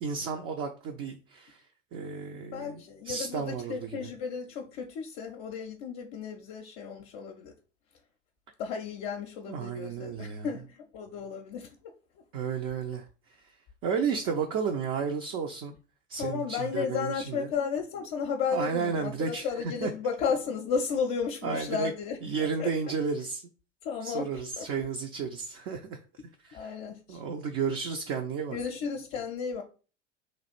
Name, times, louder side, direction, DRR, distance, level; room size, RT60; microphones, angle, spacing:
voice 1, 0.0-1.6 1.9-4.1 9.5-10.5 12.3-13.0 13.8-15.7 16.1-17.5 18.5-19.5 19.8-19.9 21.4-21.9 22.2-23.4 24.0-26.0 26.4-26.7 27.1-28.6, right 6 dB, 35° right, 0.5 m, -32 dB
voice 2, 2.5-7.5 8.6-11.9 16.2-22.7 23.8-24.3 24.6-24.7 26.5-27.2 28.5-29.6, left 6 dB, 50° left, 0.6 m, -33 dB
3.1 x 2.4 x 4.3 m
figure-of-eight pair, 75°, 36 cm